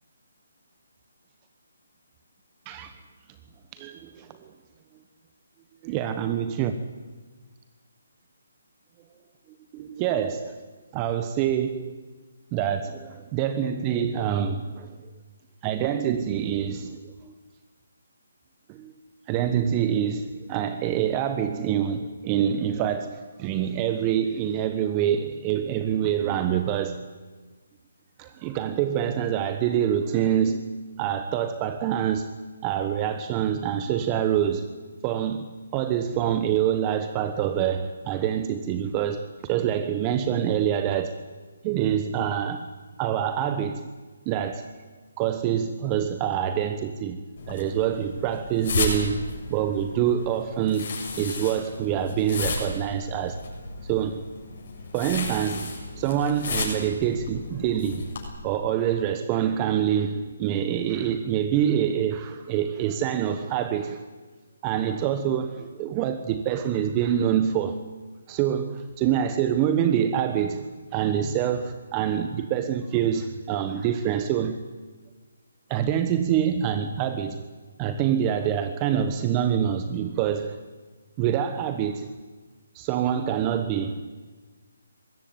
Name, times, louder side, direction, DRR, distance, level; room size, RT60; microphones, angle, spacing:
voice 1, 3.7-4.5 5.8-6.7 9.7-10.6 10.9-12.0 12.5-14.9 15.6-17.3 18.7-18.9 19.3-27.0 28.2-30.6 31.0-32.3 32.6-34.7 35.0-35.5 35.7-41.2 41.6-42.7 43.0-43.9 44.3-44.7 45.2-53.4 53.8-54.2 54.9-58.1 58.4-64.0 64.6-67.8 68.3-74.6 75.7-77.5 77.8-80.6 81.2-82.1 82.7-84.1, right 9 dB, 25° right, 9 dB, 1.1 m, -26 dB
sound 1, 47.4-58.3, left 3 dB, 55° left, 7.4 m, -33 dB
20.5 x 16.0 x 9.5 m, 1.4 s
figure-of-eight pair, 150°, 0 cm